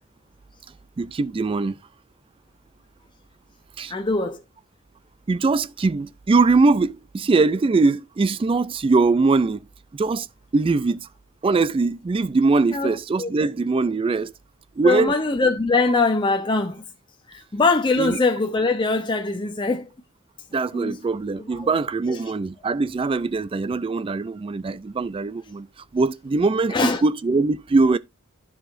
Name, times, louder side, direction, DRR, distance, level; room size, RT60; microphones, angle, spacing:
voice 1, 1.0-1.8 3.8-3.9 5.3-9.7 9.9-10.3 10.5-11.1 11.4-14.3 14.8-15.1 18.0-18.2 20.5-25.7 25.9-28.0, right 3 dB, 25° right, 0.3 m, -21 dB
voice 2, 3.9-4.4 12.7-12.9 13.2-13.3 14.8-16.8 17.3-19.8 20.7-21.0 21.6-21.7 26.7-27.0, left 3 dB, 20° left, 0.7 m, -22 dB
13.0 x 4.8 x 2.5 m
head